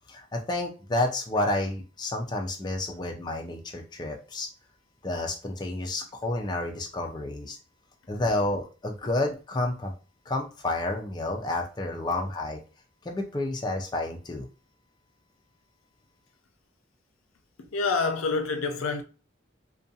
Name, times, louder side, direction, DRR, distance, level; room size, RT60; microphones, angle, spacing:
voice 1, 0.1-4.5 5.0-7.6 8.1-9.9 10.3-12.6 13.0-14.5, left 2 dB, 20° left, 0.3 m, -30 dB
voice 2, 17.6-19.0, left 4 dB, 90° left, 0.5 m, -27 dB
2.5 x 2.2 x 2.6 m
head